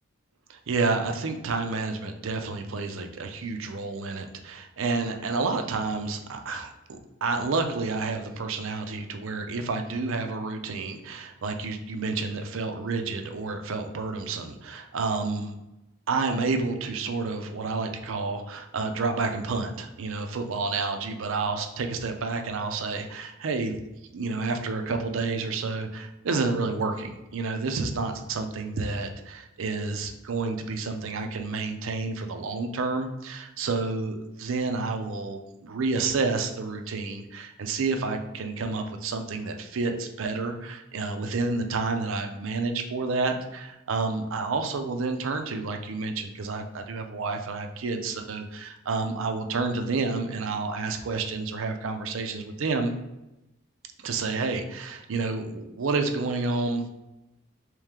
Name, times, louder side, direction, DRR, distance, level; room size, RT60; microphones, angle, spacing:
voice 1, 0.5-15.5 16.1-23.8 24.1-52.9 54.0-56.9, right 3 dB, 70° right, 5 dB, 0.5 m, -30 dB
3.2 x 3.1 x 3.6 m, 0.95 s
head